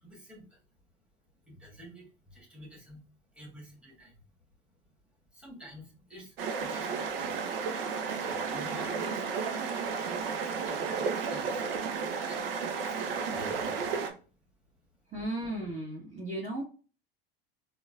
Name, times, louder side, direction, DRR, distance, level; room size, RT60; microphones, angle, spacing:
voice 1, 0.0-0.6 1.4-3.0 3.3-4.1 5.3-7.4 8.2-12.5 12.8-13.9, right 1 dB, 5° right, -3 dB, 1.5 m, -49 dB
sound 1, 6.4-14.1, right 5 dB, 70° right, 0.6 m, -33 dB
voice 2, 15.1-16.6, right 1 dB, 25° right, -5 dB, 1.3 m, -35 dB
3.7 x 2.2 x 2.4 m, 0.36 s
hypercardioid pair, 75°, 30 cm